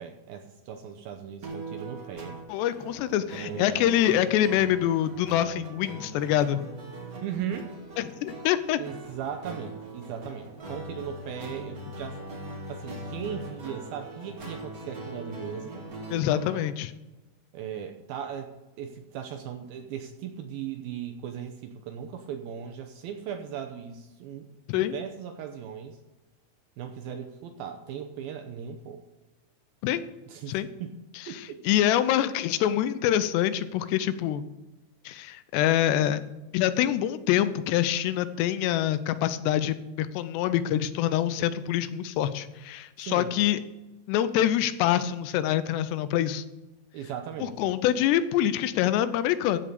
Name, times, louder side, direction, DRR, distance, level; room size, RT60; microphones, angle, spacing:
voice 1, 0.0-2.4 3.4-4.1 7.0-7.7 8.8-12.2 12.7-15.8 16.4-16.6 17.5-18.5 18.8-26.0 26.8-29.0 30.3-30.9 31.3-31.6 43.0-43.3 46.9-47.7, right 8 dB, 80° right, 6 dB, 2.2 m, -38 dB
sound 1, 1.4-16.7, right 1 dB, 45° right, 1.1 m, -41 dB
voice 2, 2.5-6.6 8.0-8.8 16.1-16.9 24.7-24.9 29.8-30.0 30.5-30.7 31.7-34.5 35.1-36.2 36.5-43.6 44.1-46.4 47.4-49.6, left 11 dB, 85° left, 13 dB, 2.7 m, -25 dB
15.0 x 5.6 x 6.7 m, 1.0 s
omnidirectional pair, 4.9 m